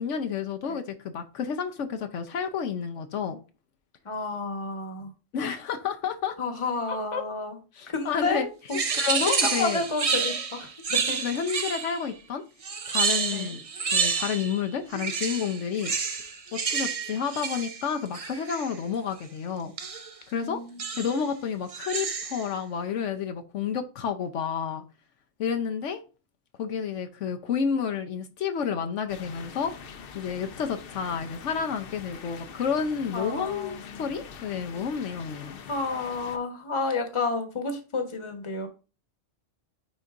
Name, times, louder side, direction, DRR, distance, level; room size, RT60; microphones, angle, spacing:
voice 1, 0.0-3.4 5.3-6.4 6.9-7.2 7.8-8.5 8.9-9.8 11.2-12.4 12.9-13.6 13.9-15.9 16.5-19.7 20.3-20.6 21.0-24.8 25.4-26.0 26.6-29.7 30.1-35.6, left 7 dB, 80° left, 1.0 m, -30 dB
voice 2, 4.0-5.1 6.4-7.6 7.9-8.8 9.3-11.2 13.3-13.5 20.3-20.8 33.1-34.0 35.7-38.7, left 3 dB, 25° left, 1.1 m, -31 dB
sound 1, 8.7-12.1 12.6-14.6 14.9-18.7 19.8-20.1 20.8-21.2 21.7-22.5, right 5 dB, 40° right, 0.5 m, -29 dB
sound 2, 29.1-36.4, left 6 dB, 55° left, 0.8 m, -44 dB
9.6 x 4.0 x 2.5 m
omnidirectional pair, 1.3 m